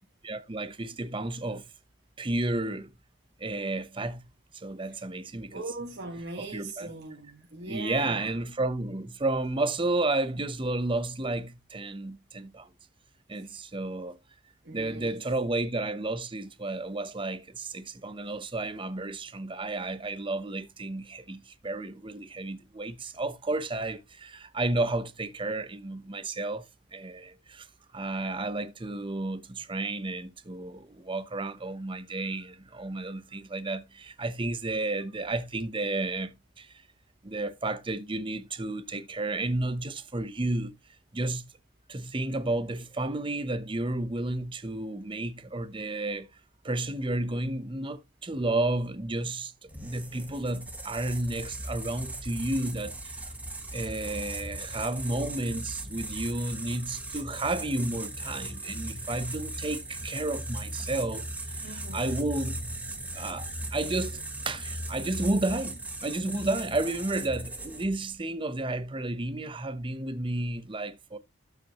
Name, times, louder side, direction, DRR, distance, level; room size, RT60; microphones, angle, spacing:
voice 1, 0.2-1.7 2.2-2.9 3.4-4.2 4.5-5.6 6.4-6.9 7.6-12.7 13.3-14.2 14.7-26.6 26.9-27.7 27.9-36.7 37.2-40.7 41.1-41.5 41.9-46.3 46.6-53.1 53.7-61.3 61.6-62.6 63.1-71.2, right 2 dB, 25° right, 0.8 m, -32 dB
voice 2, 5.5-8.3 13.4-13.5 14.6-15.2 61.6-62.1, right 2 dB, 55° right, 1.6 m, -40 dB
sound 1, 49.7-68.0, right 1 dB, 10° right, 1.2 m, -38 dB
12.5 x 5.8 x 2.9 m
head